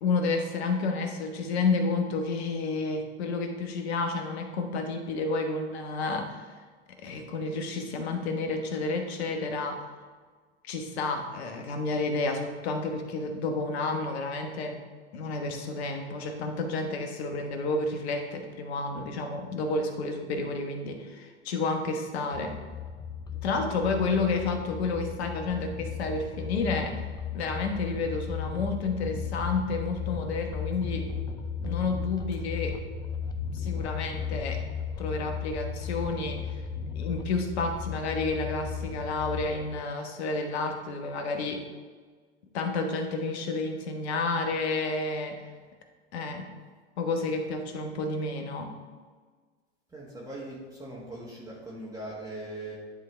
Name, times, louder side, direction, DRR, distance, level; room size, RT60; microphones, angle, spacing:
voice 1, 0.0-6.5 7.0-9.8 10.6-14.8 15.1-22.6 23.4-27.0 27.3-31.1 31.6-32.8 33.5-34.6 35.0-36.6 37.0-41.6 42.5-45.4 46.1-46.5 47.0-48.7, left 3 dB, 65° left, 4 dB, 1.2 m, -30 dB
sound 1, 22.3-39.7, left 6 dB, 10° left, 0.5 m, -35 dB
voice 2, 49.9-52.7, right 1 dB, 10° right, -7 dB, 1.5 m, -40 dB
10.5 x 3.6 x 3.3 m, 1.5 s
hypercardioid pair, 105°, 35 cm